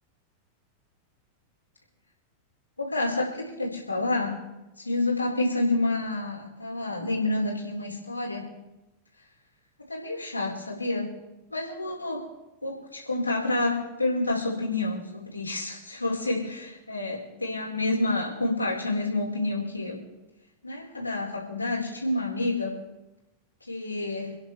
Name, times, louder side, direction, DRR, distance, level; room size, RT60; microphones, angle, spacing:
voice 1, 2.8-4.4 4.8-8.4 9.9-11.1 11.5-12.2 12.6-20.0 20.6-22.8 23.6-24.4, left 2 dB, 80° left, -4 dB, 4.3 m, -29 dB
29.5 x 10.5 x 3.3 m, 1.0 s
figure-of-eight pair, 90°, 0 cm